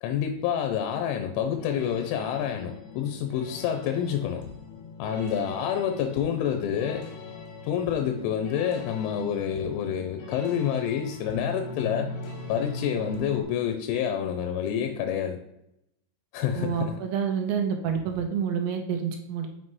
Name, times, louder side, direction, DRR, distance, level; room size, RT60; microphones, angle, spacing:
voice 1, 0.0-4.4 5.0-7.1 7.6-12.1 12.5-15.4 16.3-17.0, left 8 dB, 90° left, 6 dB, 3.1 m, -28 dB
sound 1, 1.5-13.4, left 4 dB, 70° left, 2.3 m, -40 dB
voice 2, 16.5-19.5, right 7 dB, 75° right, 4 dB, 2.9 m, -28 dB
7.4 x 5.6 x 3.1 m, 0.81 s
omnidirectional pair, 5.5 m